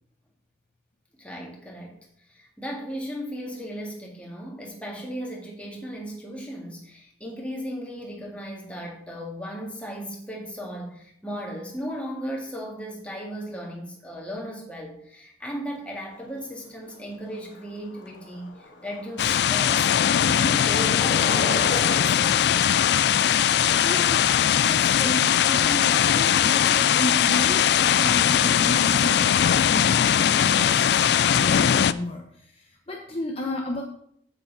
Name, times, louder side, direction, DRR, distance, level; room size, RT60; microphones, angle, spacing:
voice 1, 1.2-2.0 2.3-22.7, equal, 5° left, -2 dB, 1.9 m, -36 dB
Skateboard, 15.7-30.9, left 2 dB, 80° left, 1.7 m, -40 dB
sound 1, 19.2-31.9, left 9 dB, 60° left, 0.3 m, -20 dB
voice 2, 23.8-24.2 24.5-33.8, left 1 dB, 30° left, 0 dB, 0.9 m, -33 dB
8.2 x 7.9 x 4.0 m, 0.68 s
head